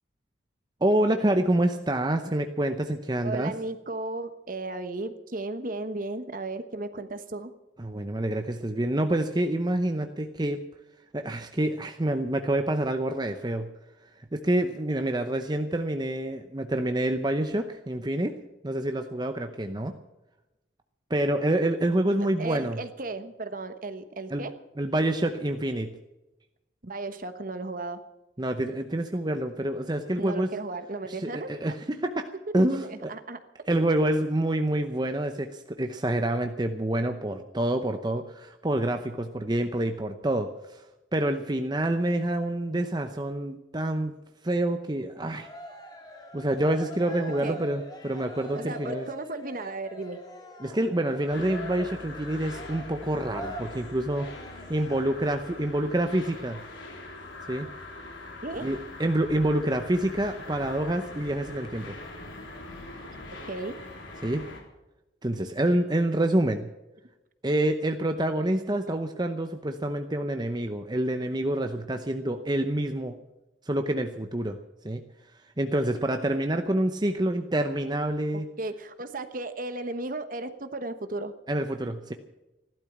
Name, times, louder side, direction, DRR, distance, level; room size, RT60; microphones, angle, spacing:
voice 1, 0.8-3.5 7.8-10.6 11.1-13.7 14.2-18.3 18.6-19.9 21.1-22.8 24.3-24.4 24.8-25.9 28.4-30.5 31.1-32.2 32.5-33.1 33.7-40.9 41.1-44.1 44.4-45.5 46.3-49.1 50.6-56.6 57.5-57.7 58.6-62.0 64.2-64.4 65.2-66.7 67.4-73.2 73.6-74.6 74.8-75.0 75.6-78.5 81.5-82.1, right 1 dB, 20° right, 6 dB, 0.7 m, -27 dB
voice 2, 3.2-7.5 22.4-24.5 26.8-28.0 30.2-31.5 32.8-33.4 47.4-47.6 48.5-50.2 58.4-58.7 63.4-63.7 78.6-81.3, right 2 dB, 45° right, 10 dB, 1.2 m, -35 dB
Cheering, 45.3-55.3, left 1 dB, 20° left, 2.5 m, -43 dB
sound 1, 51.3-64.6, left 2 dB, 80° left, 3.8 m, -42 dB
15.0 x 12.0 x 7.2 m, 0.99 s
head